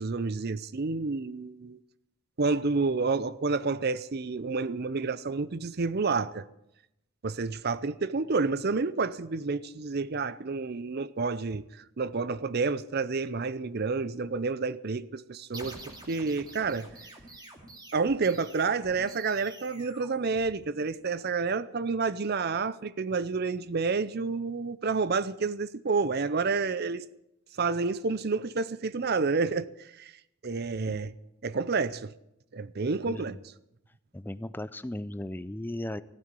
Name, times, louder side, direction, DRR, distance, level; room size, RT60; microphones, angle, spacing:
voice 1, 0.0-1.8 2.4-6.5 7.2-16.9 17.9-27.1 27.6-30.1 30.4-31.1 31.4-32.1 32.5-33.4, right 4 dB, 45° right, 0.6 m, -29 dB
sound 1, 15.5-21.0, right 2 dB, 20° right, 2.3 m, -48 dB
voice 2, 33.1-33.4 34.1-36.0, left 1 dB, 10° left, 0.4 m, -36 dB
15.0 x 9.1 x 8.3 m
head